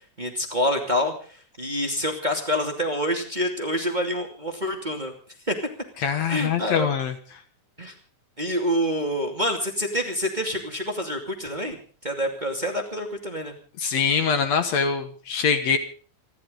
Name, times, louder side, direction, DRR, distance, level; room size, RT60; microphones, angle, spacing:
voice 1, 0.2-1.1 1.6-5.1 5.5-5.6 6.3-6.9 7.8-7.9 8.4-11.8 12.0-13.5, equal, 15° right, 3 dB, 2.3 m, -27 dB
voice 2, 6.0-7.2 13.8-15.8, left 6 dB, 65° left, 8 dB, 2.5 m, -23 dB
28.0 x 12.0 x 3.9 m, 0.40 s
omnidirectional pair, 3.5 m